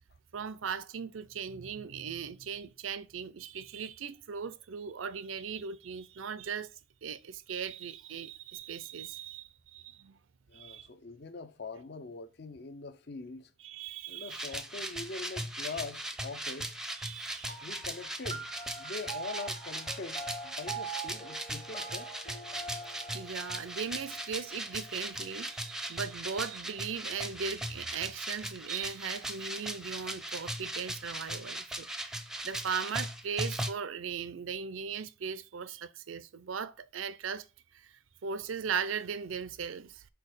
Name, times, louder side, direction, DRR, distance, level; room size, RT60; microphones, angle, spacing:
voice 1, 0.3-10.2 10.5-10.9 13.6-14.5 16.9-17.7 23.1-31.9 32.4-37.5 37.7-37.9 38.2-40.1, right 6 dB, 90° right, 0.5 m, -38 dB
voice 2, 10.5-13.5 14.1-16.8 17.6-18.5 18.8-22.1, left 4 dB, 55° left, 0.6 m, -43 dB
sound 1, 14.3-33.7, right 1 dB, 5° right, 0.5 m, -39 dB
sound 2, 17.5-26.3, right 3 dB, 35° left, 1.0 m, -45 dB
4.6 x 4.5 x 4.9 m
head